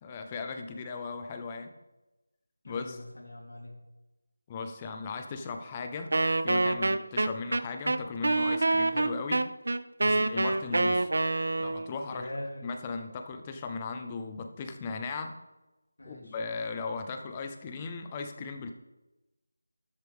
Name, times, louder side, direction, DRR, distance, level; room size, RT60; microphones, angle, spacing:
voice 1, 0.0-1.7 2.7-3.0 4.5-6.1 6.4-9.4 10.0-11.1 11.6-12.3 12.6-15.4 16.1-18.7, left 4 dB, 10° left, 6 dB, 0.4 m, -37 dB
voice 2, 2.6-3.8 10.0-10.2 12.1-12.7 16.0-16.4, left 1 dB, 65° left, -1 dB, 2.9 m, -42 dB
Wind instrument woodwind instrument, 6.1-11.9, right 2 dB, 50° right, 0.5 m, -27 dB
13.0 x 7.9 x 3.5 m, 1.1 s
figure-of-eight pair, 180°, 0 cm